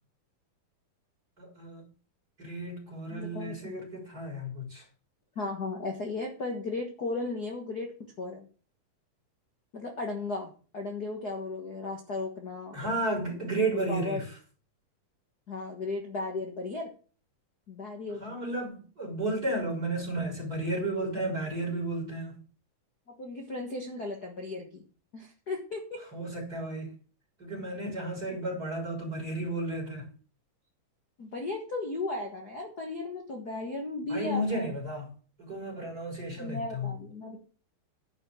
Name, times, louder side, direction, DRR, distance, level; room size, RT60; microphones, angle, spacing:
voice 1, 1.4-1.8 2.4-4.8 12.7-14.4 18.2-22.4 26.1-26.9 27.4-30.1 34.1-35.1 35.4-36.9, right 1 dB, 25° right, 4.3 m, -33 dB
voice 2, 3.1-3.7 5.3-7.9 8.2-8.5 9.7-12.7 13.7-14.2 15.5-16.9 17.7-18.2 23.1-24.8 25.1-26.0 28.3-28.4 31.2-34.7 36.4-37.4, left 3 dB, 45° left, 1.2 m, -35 dB
10.5 x 5.5 x 7.9 m
omnidirectional pair, 4.0 m